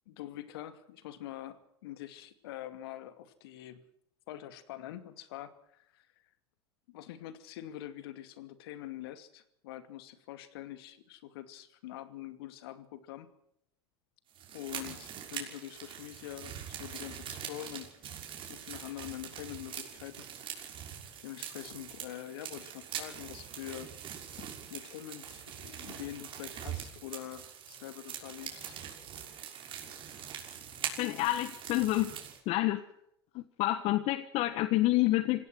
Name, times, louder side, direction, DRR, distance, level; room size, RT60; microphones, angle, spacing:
voice 1, 0.1-3.9 4.3-6.1 6.9-13.3 14.5-17.9 18.5-20.7 21.2-23.9 24.7-28.8 30.8-30.9, left 13 dB, 65° left, 11 dB, 2.4 m, -45 dB
sound 1, 14.4-32.4, right 9 dB, 40° right, 6.1 m, -43 dB
voice 2, 31.0-32.1 32.5-32.8 33.3-35.5, left 16 dB, 50° left, 13 dB, 1.4 m, -28 dB
27.0 x 17.0 x 6.2 m, 0.74 s
figure-of-eight pair, 80°, 14 cm